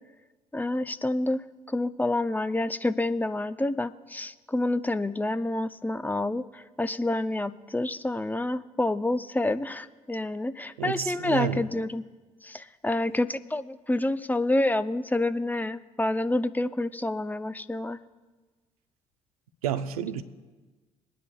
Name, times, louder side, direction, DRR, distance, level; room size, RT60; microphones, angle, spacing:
voice 1, 0.5-12.0 12.4-18.0, left 2 dB, 10° left, 0.6 m, -28 dB
voice 2, 10.8-11.6 19.6-20.2, right 9 dB, 80° right, 0.7 m, -30 dB
23.0 x 10.0 x 2.3 m
figure-of-eight pair, 50°, 18 cm